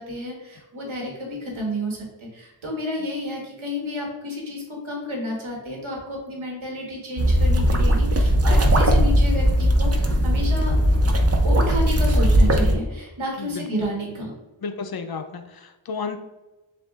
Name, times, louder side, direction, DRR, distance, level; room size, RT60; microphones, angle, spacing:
voice 1, 0.0-2.0 2.3-10.7 11.4-14.3, left 1 dB, 90° right, -1 dB, 1.2 m, -30 dB
sound 1, 7.2-12.8, equal, 35° right, 0.5 m, -18 dB
voice 2, 14.6-16.2, left 5 dB, 55° left, 7 dB, 0.5 m, -32 dB
7.1 x 2.4 x 2.3 m, 1.1 s
wide cardioid pair, 65°, 46 cm